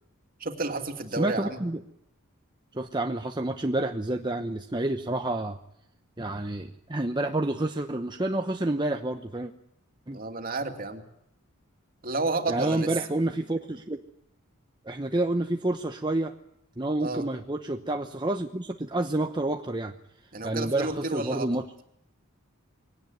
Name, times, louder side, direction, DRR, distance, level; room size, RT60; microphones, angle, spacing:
voice 1, 0.4-1.6 10.1-11.0 12.0-12.9 17.0-17.3 20.3-21.5, right 2 dB, 40° right, 5 dB, 2.6 m, -31 dB
voice 2, 1.2-1.8 2.7-5.6 6.2-9.5 10.1-10.2 12.5-14.0 14.8-16.3 16.8-19.9 20.4-21.6, right 2 dB, 20° right, 5 dB, 0.9 m, -29 dB
22.5 x 18.0 x 9.4 m, 0.78 s
head